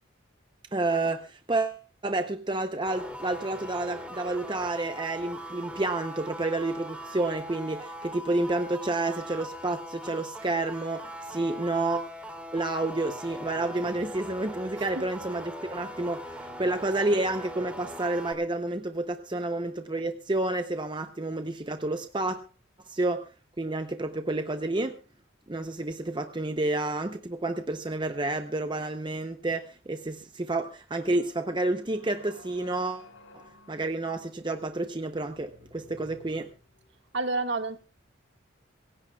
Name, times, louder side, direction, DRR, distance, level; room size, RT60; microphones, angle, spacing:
voice 1, 0.7-12.1 12.5-22.5 22.9-23.3 23.6-25.0 25.5-33.1 33.3-36.5, right 2 dB, 20° right, 0.7 m, -30 dB
sound 1, 2.9-18.3, equal, 5° right, 2.7 m, -41 dB
sound 2, 31.1-37.1, left 2 dB, 75° left, 7.9 m, -54 dB
voice 2, 37.1-37.8, right 3 dB, 55° right, 1.8 m, -29 dB
26.0 x 16.5 x 2.3 m
head